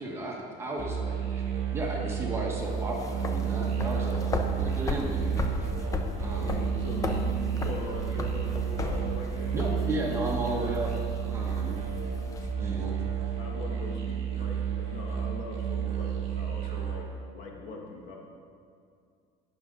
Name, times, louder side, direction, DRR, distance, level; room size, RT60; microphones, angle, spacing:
voice 1, 0.0-1.4 1.7-5.7 6.2-6.6 9.5-10.9 11.2-11.8 12.6-12.9, right 1 dB, 15° right, -2 dB, 1.3 m, -34 dB
sound 1, 0.8-17.0, right 7 dB, 35° right, 2.2 m, -31 dB
sound 2, 2.6-12.5, left 3 dB, 20° left, 0.7 m, -36 dB
voice 2, 6.2-9.6 12.4-12.5 13.4-18.2, left 3 dB, 50° left, 0 dB, 1.7 m, -41 dB
18.5 x 6.7 x 3.9 m, 2.3 s
cardioid pair, 165°, 17 cm